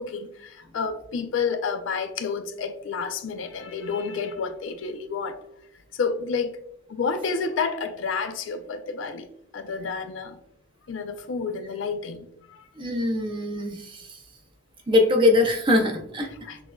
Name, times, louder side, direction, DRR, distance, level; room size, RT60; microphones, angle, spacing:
voice 1, 0.0-5.4 5.9-6.5 6.9-9.3 9.5-10.4 10.9-12.6 16.4-16.6, left 5 dB, 75° left, 0.4 m, -30 dB
voice 2, 12.8-14.2 14.9-16.3, left 2 dB, 25° right, 0.6 m, -22 dB
6.2 x 2.5 x 2.2 m
head